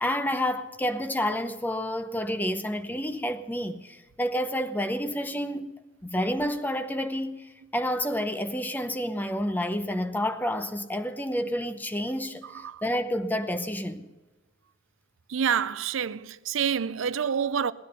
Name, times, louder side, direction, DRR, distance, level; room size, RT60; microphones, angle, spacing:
voice 1, 0.0-5.7 6.0-14.1, equal, 10° left, 0.7 m, -29 dB
voice 2, 15.3-17.7, right 7 dB, 85° right, 0.5 m, -27 dB
18.5 x 11.0 x 5.4 m
head